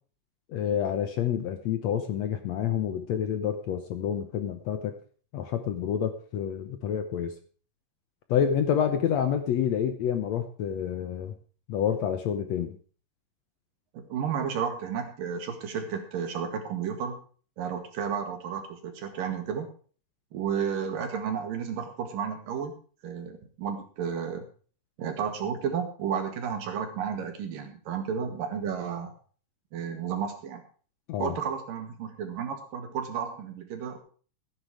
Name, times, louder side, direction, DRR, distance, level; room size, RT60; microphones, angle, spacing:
voice 1, 0.5-4.9 5.3-7.3 8.3-11.3 11.7-12.8 31.1-31.3, left 8 dB, 70° left, 8 dB, 1.8 m, -28 dB
voice 2, 13.9-17.2 17.6-19.7 20.3-22.7 23.0-24.4 25.0-29.1 29.7-30.6 31.2-34.0, right 7 dB, 80° right, 5 dB, 3.7 m, -32 dB
14.5 x 9.9 x 4.8 m, 0.41 s
omnidirectional pair, 3.9 m